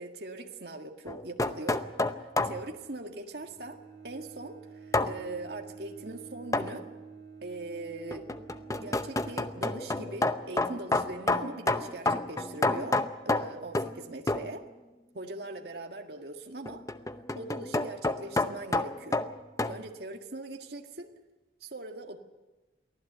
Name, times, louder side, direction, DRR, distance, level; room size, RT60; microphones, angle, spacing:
voice 1, 0.0-1.9 2.2-3.8 4.0-6.9 7.4-8.3 8.8-14.7 15.1-16.8 17.4-19.2 19.7-21.1 21.6-22.2, right 2 dB, 60° right, 4 dB, 1.8 m, -41 dB
sound 1, 1.1-2.6 4.9-5.2 6.5-6.8 8.1-14.0 14.3-14.5 16.7-19.8, left 2 dB, 20° left, 0.7 m, -29 dB
Bowed string instrument, 3.4-10.1, right 5 dB, 35° right, 7.1 m, -49 dB
23.5 x 15.5 x 8.1 m, 1.1 s
head